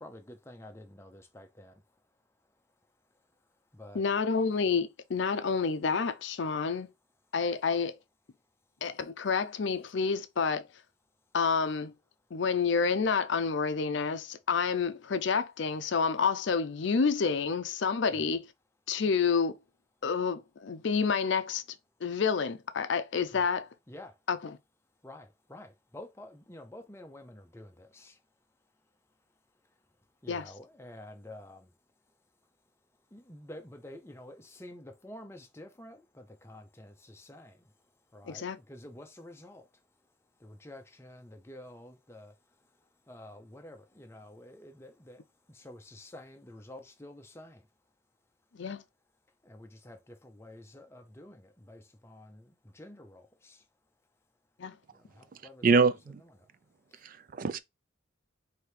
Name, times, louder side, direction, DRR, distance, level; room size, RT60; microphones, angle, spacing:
voice 1, 0.0-1.7 3.8-4.0 23.3-23.4 23.9-24.1 25.0-25.7 25.9-28.1 30.2-31.6 33.1-37.5 38.1-39.6 40.4-42.3 43.1-45.2 45.6-47.6 49.5-50.0 50.2-51.4 51.7-52.4 52.8-53.6 55.2-56.3, left 1 dB, 15° left, 0.6 m, -49 dB
voice 2, 3.9-6.9 7.3-8.0 8.8-10.8 11.3-11.9 12.3-18.5 18.9-19.6 20.0-23.7 24.3-24.6 30.3-30.5 38.2-38.6 48.5-48.8 54.6-54.8, left 5 dB, 65° left, 0.5 m, -29 dB
voice 3, 55.6-56.2 57.0-57.6, right 4 dB, 45° right, 0.3 m, -25 dB
4.7 x 2.8 x 3.2 m
head